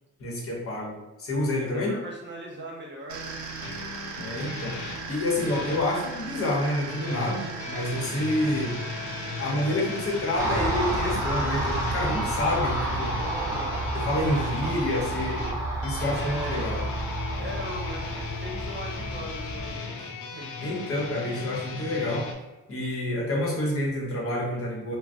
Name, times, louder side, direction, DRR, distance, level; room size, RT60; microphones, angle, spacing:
voice 1, 0.2-2.0 4.2-8.8 9.4-13.2 13.9-16.8 20.6-22.3 22.7-25.0, left 1 dB, 50° left, -2 dB, 0.9 m, -28 dB
voice 2, 1.6-3.5 13.2-13.9 16.1-16.8 17.3-20.5, right 1 dB, 35° right, -2 dB, 0.9 m, -39 dB
sound 1, 3.1-11.9, right 4 dB, 75° right, 0.7 m, -38 dB
sound 2, 3.6-5.8 6.9-22.3, left 4 dB, 80° left, 0.5 m, -37 dB
Car passing by, 10.4-19.8, right 1 dB, 10° right, 0.9 m, -30 dB
3.7 x 2.0 x 2.6 m, 1.1 s
cardioid pair, 90°, 30 cm